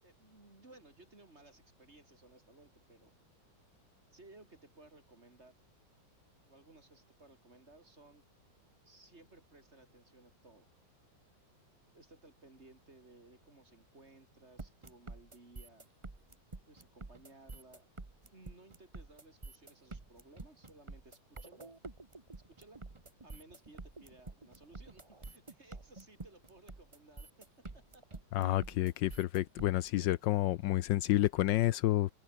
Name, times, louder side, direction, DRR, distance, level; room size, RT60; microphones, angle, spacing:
voice 1, 0.0-3.1 4.1-5.6 6.5-8.2 8.9-10.7 11.9-15.9 16.7-17.9 18.3-21.7 22.3-22.8 23.2-28.6, right 2 dB, 35° right, 4.1 m, -59 dB
sound 1, 14.6-29.9, right 3 dB, 20° right, 1.2 m, -48 dB
voice 2, 28.3-32.1, left 14 dB, 75° left, 1.3 m, -29 dB
omnidirectional pair, 2.1 m